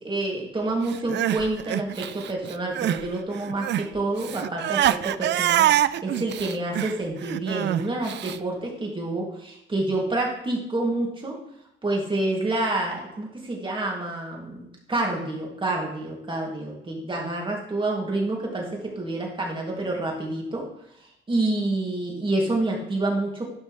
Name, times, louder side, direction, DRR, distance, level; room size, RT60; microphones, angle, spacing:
voice 1, 0.0-11.4 11.8-20.6 21.3-23.5, right 2 dB, 25° right, -1 dB, 2.7 m, -28 dB
Crying sobbing, 0.9-3.1 3.3-8.4, right 12 dB, 60° right, 0.4 m, -25 dB
11.5 x 5.4 x 3.4 m, 0.79 s
cardioid pair, 90°, 20 cm